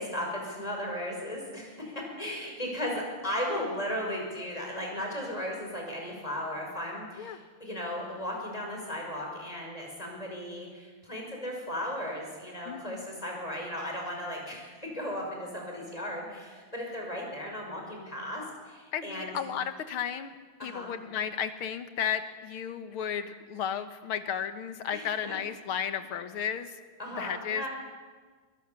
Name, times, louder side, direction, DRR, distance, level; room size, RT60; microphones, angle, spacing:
voice 1, 0.0-19.3 20.6-20.9 24.9-25.4 27.0-27.7, equal, 15° left, 0 dB, 5.5 m, -36 dB
voice 2, 12.7-13.1 18.9-20.4 20.6-26.8 27.2-27.6, left 8 dB, 70° left, 10 dB, 2.0 m, -33 dB
22.5 x 21.0 x 7.0 m, 1.5 s
omnidirectional pair, 2.4 m